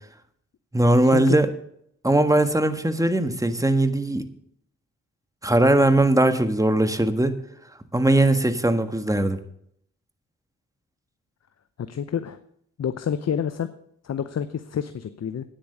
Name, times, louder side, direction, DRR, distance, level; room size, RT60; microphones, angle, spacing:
voice 1, 0.7-1.5 2.0-4.3 5.4-7.3 7.9-9.4, right 1 dB, 10° right, 9 dB, 1.5 m, -20 dB
voice 2, 11.9-12.4 12.8-13.7 14.0-15.4, left 8 dB, 50° left, 11 dB, 0.8 m, -28 dB
9.5 x 8.6 x 6.8 m, 0.70 s
supercardioid pair, 45°, 34 cm